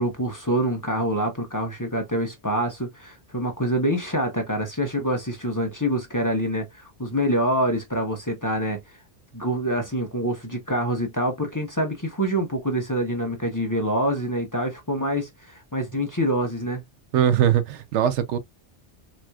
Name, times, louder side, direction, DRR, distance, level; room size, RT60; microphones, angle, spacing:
voice 1, 0.0-8.8 9.3-16.8, equal, 20° left, 0.8 m, -26 dB
voice 2, 17.1-18.4, right 9 dB, 90° right, 1.0 m, -21 dB
4.1 x 2.9 x 2.3 m
omnidirectional pair, 1.1 m